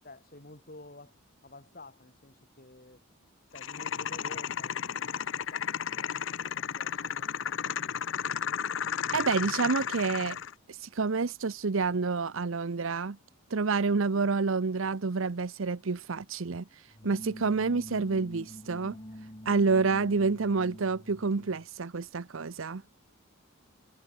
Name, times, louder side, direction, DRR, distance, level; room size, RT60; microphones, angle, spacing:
voice 1, 0.0-1.1 1.4-3.0 3.5-5.7 5.9-8.0, left 2 dB, 40° left, 4.9 m, -51 dB
sound 1, 3.6-10.5, left 8 dB, 60° left, 0.6 m, -33 dB
voice 2, 9.1-10.4 10.7-13.2 13.5-19.0 19.5-22.8, right 4 dB, 65° right, 0.7 m, -28 dB
sound 2, 16.9-21.7, equal, 25° left, 3.6 m, -46 dB
head